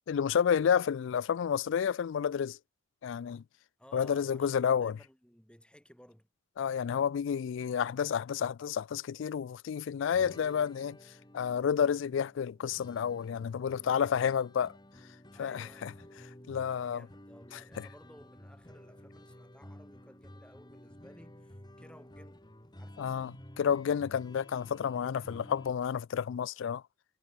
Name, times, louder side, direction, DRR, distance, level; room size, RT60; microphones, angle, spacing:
voice 1, 0.1-2.6 3.0-3.4 3.9-4.9 6.6-11.0 11.3-14.7 15.4-15.9 16.5-17.1 17.8-17.9 23.0-26.8, left 7 dB, 60° left, 0.3 m, -30 dB
voice 2, 3.8-6.3 15.3-16.2 16.8-22.5 22.8-23.1, equal, 5° left, 5.0 m, -57 dB
sound 1, 10.1-25.7, left 1 dB, 20° left, 2.3 m, -52 dB
head